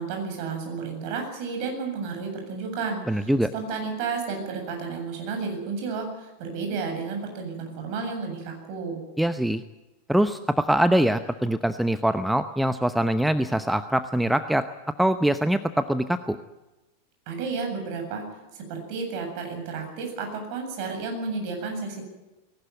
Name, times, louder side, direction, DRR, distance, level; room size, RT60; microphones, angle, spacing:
voice 1, 0.0-9.0 17.3-18.3 18.5-22.0, right 4 dB, 45° right, 3 dB, 7.9 m, -32 dB
voice 2, 3.1-3.5 9.2-9.6 10.1-14.7 15.0-16.4, right 1 dB, ahead, 11 dB, 0.8 m, -23 dB
19.5 x 18.5 x 9.6 m, 1.0 s
figure-of-eight pair, 90°, 0 cm